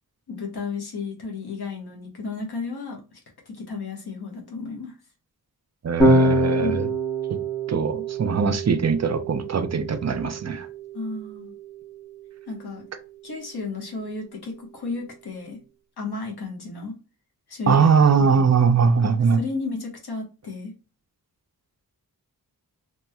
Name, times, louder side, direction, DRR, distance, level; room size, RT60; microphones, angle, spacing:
voice 1, 0.3-3.2 3.5-4.9 6.6-6.8 10.9-11.5 12.5-12.8 13.2-15.6 16.0-17.0 17.5-18.5 19.3-20.7, left 4 dB, 85° left, 1.1 m, -33 dB
voice 2, 5.8-6.9 7.7-10.7 17.7-19.4, right 5 dB, 45° right, 0.4 m, -21 dB
Electric guitar / Bass guitar, 6.0-12.4, right 2 dB, 10° left, 0.9 m, -25 dB
3.0 x 3.0 x 2.3 m
wide cardioid pair, 95°, 37 cm